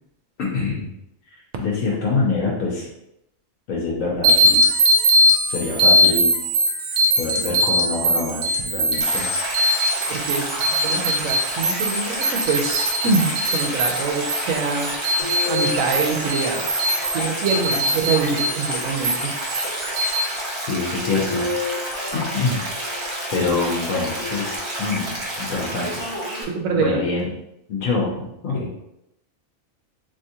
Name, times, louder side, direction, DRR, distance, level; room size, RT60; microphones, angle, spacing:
voice 1, 0.4-0.9 1.3-2.9 3.7-4.7 5.5-6.4 7.2-9.2 20.7-21.4 22.1-22.6 23.3-26.1 26.7-27.3 27.7-28.7, left 3 dB, 80° left, -4 dB, 1.1 m, -25 dB
sound 1, 4.2-20.2, equal, 60° right, 0.9 m, -21 dB
Stream, 9.0-26.4, right 1 dB, 30° right, 0.5 m, -30 dB
voice 2, 10.1-14.9 15.2-16.6 17.1-19.3 26.5-27.0, right 4 dB, 80° right, 2 dB, 1.0 m, -25 dB
sound 2, 15.2-17.5 18.2-19.2 21.2-23.3 24.2-25.1 25.7-25.8 27.2-27.3, left 3 dB, 45° left, 0.5 m, -33 dB
3.5 x 2.8 x 2.8 m, 0.83 s
omnidirectional pair, 1.4 m